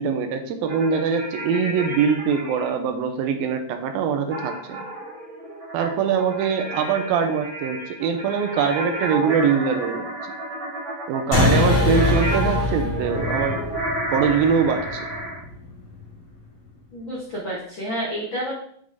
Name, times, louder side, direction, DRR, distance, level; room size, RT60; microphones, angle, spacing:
voice 1, 0.0-4.8 5.7-10.1 11.1-13.6 14.1-15.1, right 6 dB, 80° right, 7 dB, 2.3 m, -23 dB
sound 1, 0.6-2.7 4.3-15.4, right 1 dB, 30° right, 1.5 m, -31 dB
sound 2, 11.3-16.1, left 2 dB, 45° left, 2.8 m, -24 dB
voice 2, 11.4-11.7 16.9-18.5, equal, 70° left, -5 dB, 1.1 m, -30 dB
6.5 x 5.2 x 3.4 m, 0.65 s
omnidirectional pair, 4.4 m